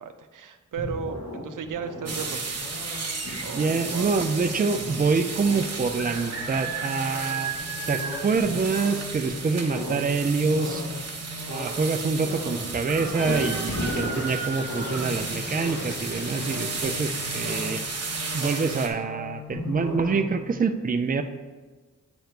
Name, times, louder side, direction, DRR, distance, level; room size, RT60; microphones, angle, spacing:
voice 1, 0.0-2.6 3.4-4.2, right 6 dB, 85° right, 7 dB, 0.6 m, -35 dB
sound 1, 0.7-20.6, left 1 dB, 65° left, 1.9 m, -37 dB
sound 2, 2.1-18.9, right 4 dB, 55° right, 1.1 m, -33 dB
voice 2, 3.5-7.5 7.9-10.9 11.5-17.8 18.3-21.2, right 4 dB, 30° right, 7 dB, 0.5 m, -26 dB
sound 3, 13.2-17.6, left 4 dB, 40° left, 0.5 m, -41 dB
9.1 x 3.1 x 5.1 m, 1.3 s
wide cardioid pair, 80°, 31 cm